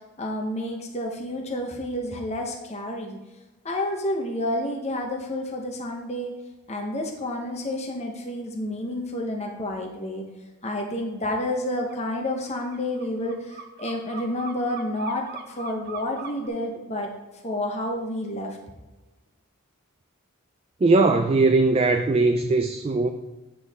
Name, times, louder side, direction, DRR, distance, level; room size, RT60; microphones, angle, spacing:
voice 1, 0.2-3.2 3.6-6.3 6.7-10.3 10.6-17.1 17.4-18.6, left 1 dB, 30° left, 1 dB, 0.9 m, -30 dB
sound 1, 11.4-11.5 11.8-16.5, right 5 dB, 50° right, 0.8 m, -40 dB
voice 2, 20.8-23.1, right 3 dB, 25° right, 7 dB, 0.3 m, -20 dB
9.1 x 6.2 x 3.5 m, 1.2 s
head